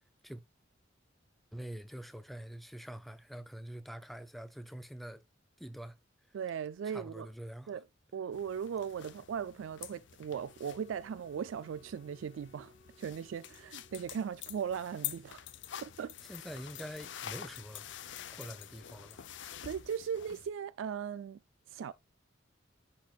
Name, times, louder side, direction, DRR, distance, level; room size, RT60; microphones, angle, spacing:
voice 1, 1.5-5.2 5.6-6.0 6.8-7.7 16.3-17.8 18.3-19.3, equal, ahead, 0.5 m, -45 dB
voice 2, 6.3-7.3 7.7-7.8 8.1-12.7 13.0-15.5 15.8-16.2 19.6-21.4 21.7-21.9, right 7 dB, 75° right, 0.3 m, -38 dB
Dressing-jeans-putting-on-belt-undressing-both, 8.3-20.5, left 11 dB, 65° left, 0.6 m, -47 dB
Wind instrument woodwind instrument, 10.4-14.8, left 1 dB, 80° left, 1.1 m, -64 dB
10.5 x 4.3 x 2.4 m
head